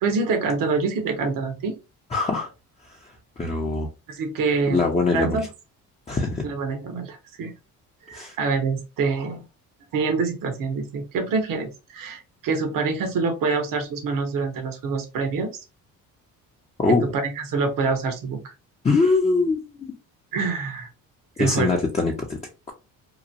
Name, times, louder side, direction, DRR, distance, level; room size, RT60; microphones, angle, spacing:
voice 1, 0.0-1.7 4.1-4.8 5.1-5.5 6.4-7.5 8.1-9.4 9.9-15.5 17.1-18.4 20.3-20.9 21.4-21.7, right 4 dB, 65° right, 1.0 m, -26 dB
voice 2, 2.1-2.5 3.4-3.9 4.7-5.5 6.1-6.4 8.1-8.4 16.8-17.0 18.8-19.9 21.4-22.4, left 3 dB, 20° left, 0.6 m, -22 dB
3.0 x 2.1 x 2.5 m
cardioid pair, 85°, 36 cm